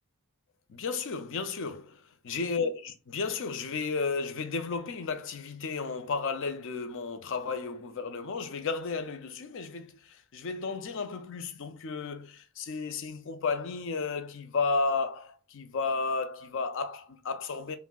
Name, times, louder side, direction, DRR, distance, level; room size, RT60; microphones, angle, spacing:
voice 1, 0.7-17.8, left 4 dB, 60° left, 0.5 m, -33 dB
5.6 x 2.1 x 2.3 m
head